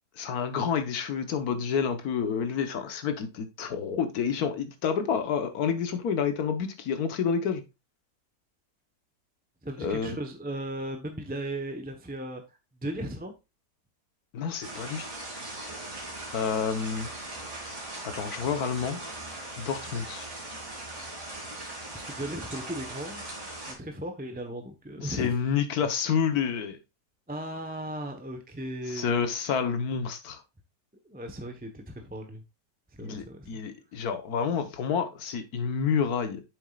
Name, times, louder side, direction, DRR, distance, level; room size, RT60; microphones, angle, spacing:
voice 1, 0.2-7.6 9.8-10.2 14.3-15.1 16.3-17.1 18.0-19.0 19.6-20.3 25.0-26.8 28.9-30.4 33.0-36.4, left 6 dB, 65° left, 1.5 m, -29 dB
voice 2, 9.6-13.3 21.9-23.2 23.6-25.4 27.3-29.2 31.0-32.4 32.9-33.6, right 1 dB, 5° right, 0.8 m, -37 dB
sound 1, 14.6-23.7, right 2 dB, 40° right, 3.4 m, -39 dB
8.3 x 7.0 x 2.4 m
omnidirectional pair, 1.8 m